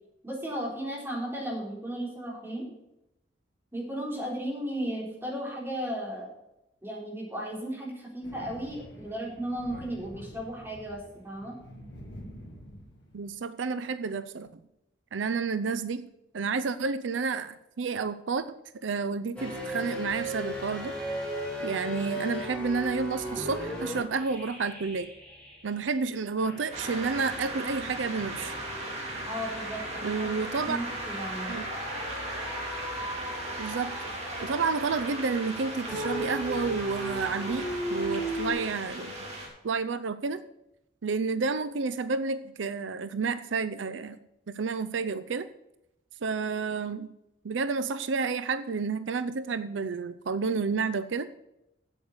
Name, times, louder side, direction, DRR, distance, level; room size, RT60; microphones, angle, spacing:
voice 1, 0.2-2.7 3.7-6.3 6.8-11.6 29.3-30.3 30.7-31.5, equal, 15° right, -4 dB, 3.9 m, -35 dB
Thunder, 8.2-13.3, equal, 65° left, 2.4 m, -47 dB
voice 2, 13.1-14.6 15.1-16.0 16.3-18.4 18.8-20.9 21.6-25.1 25.6-28.5 30.0-30.8 31.5-31.7 33.6-33.9 34.4-39.1 39.6-40.4 41.0-44.2 44.5-45.5 46.2-47.1 47.4-51.3, right 4 dB, 85° right, 12 dB, 0.5 m, -30 dB
sound 1, 19.4-25.9 26.4-38.5, equal, 5° left, 4.7 m, -38 dB
sound 2, 26.7-39.5, right 1 dB, 35° right, 3.1 m, -37 dB
8.4 x 7.9 x 6.7 m, 0.87 s
head